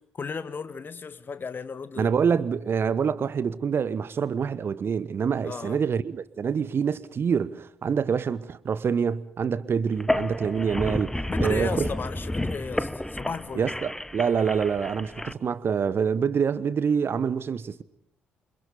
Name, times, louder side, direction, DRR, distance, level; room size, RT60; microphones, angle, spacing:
voice 1, 0.1-2.1 5.4-5.8 11.3-13.7, left 5 dB, 35° left, 1.5 m, -35 dB
voice 2, 2.0-11.9 13.5-17.8, right 6 dB, 45° right, 1.1 m, -26 dB
sound 1, 9.9-15.3, left 1 dB, 5° left, 1.1 m, -31 dB
28.5 x 26.0 x 5.2 m
figure-of-eight pair, 45°, 6 cm